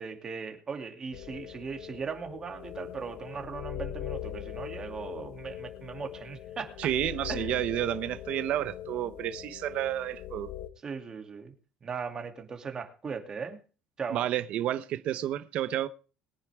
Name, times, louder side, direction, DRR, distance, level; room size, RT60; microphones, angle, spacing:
voice 1, 0.0-6.8 7.3-7.6 10.8-11.5 11.8-13.6 14.0-14.2, right 5 dB, 25° right, 2.7 m, -38 dB
sound 1, 1.1-10.7, left 12 dB, 60° left, 1.4 m, -41 dB
voice 2, 6.8-10.5 14.1-15.9, right 12 dB, 50° right, 0.8 m, -30 dB
22.0 x 9.8 x 3.6 m
cardioid pair, 145°, 3 cm